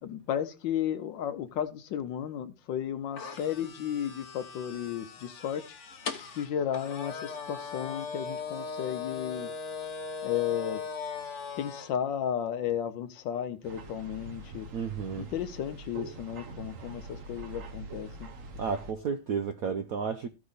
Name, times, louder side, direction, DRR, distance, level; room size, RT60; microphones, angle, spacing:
voice 1, 0.0-5.8 6.3-9.5 10.2-10.8 11.6-14.7 15.2-18.3, left 9 dB, 70° left, 1.4 m, -34 dB
sound 1, 3.2-11.9, left 6 dB, 45° left, 1.0 m, -39 dB
sound 2, 13.6-18.9, right 2 dB, 50° right, 1.2 m, -44 dB
voice 2, 14.7-15.3 18.6-20.3, right 6 dB, 75° right, 0.8 m, -32 dB
14.0 x 4.9 x 4.0 m
omnidirectional pair, 2.2 m